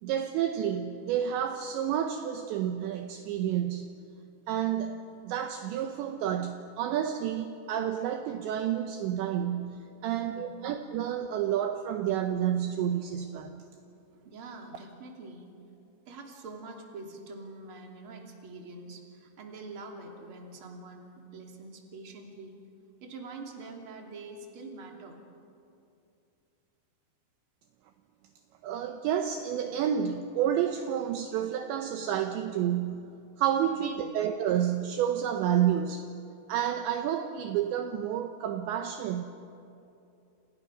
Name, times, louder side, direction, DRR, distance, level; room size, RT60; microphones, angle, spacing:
voice 1, 0.0-3.9 4.5-13.7 28.6-33.1 33.4-36.1 36.5-39.2, right 9 dB, 75° right, 6 dB, 2.9 m, -30 dB
voice 2, 10.1-10.7 14.1-15.5 16.1-22.6 23.0-25.2 33.7-34.1, right 3 dB, 35° right, 1 dB, 2.9 m, -45 dB
29.5 x 28.0 x 6.2 m, 2.7 s
omnidirectional pair, 5.7 m